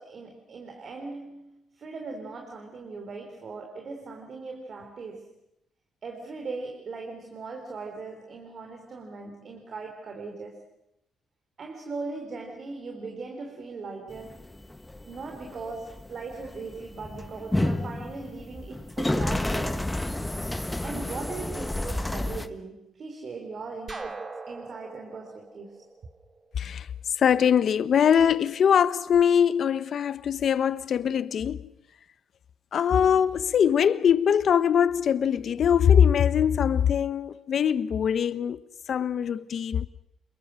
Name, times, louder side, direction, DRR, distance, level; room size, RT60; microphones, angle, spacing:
voice 1, 0.0-5.4 6.0-10.6 11.6-14.4 15.0-19.9 20.8-25.9, right 4 dB, 50° right, 3.7 m, -39 dB
sound 1, 14.1-22.5, left 1 dB, 10° left, 1.5 m, -31 dB
sound 2, 23.9-26.7, right 3 dB, 30° right, 2.4 m, -41 dB
voice 2, 26.6-26.9 27.2-31.6 32.7-38.6 38.9-39.9, left 8 dB, 60° left, 1.0 m, -22 dB
28.0 x 22.0 x 6.4 m
cardioid pair, 90°, 0 cm